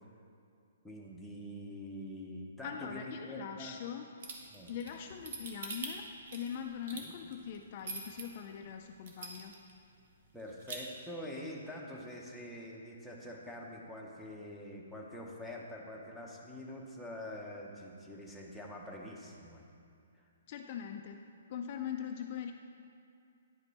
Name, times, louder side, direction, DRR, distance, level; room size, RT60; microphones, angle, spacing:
voice 1, 0.8-3.8 4.5-4.7 6.9-7.1 10.3-19.6 20.1-20.2, left 1 dB, ahead, -3 dB, 0.8 m, -45 dB
voice 2, 2.6-4.1 4.7-6.0 6.3-9.5 20.5-21.2 21.5-22.5, left 8 dB, 40° left, 4 dB, 0.4 m, -41 dB
sound 1, 4.2-8.2 8.7-8.8 9.1-9.7 10.0-10.1 10.4-10.8, right 4 dB, 55° right, 1.2 m, -43 dB
9.9 x 5.2 x 4.1 m, 2.5 s
hypercardioid pair, 160°, 0 cm